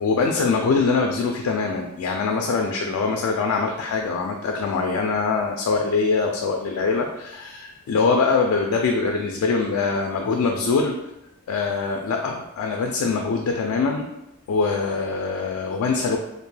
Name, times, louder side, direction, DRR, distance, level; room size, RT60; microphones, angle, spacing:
voice 1, 0.0-11.0 11.5-14.1 14.5-16.2, left 4 dB, 85° left, 2 dB, 0.3 m, -23 dB
2.5 x 2.1 x 3.1 m, 0.90 s
head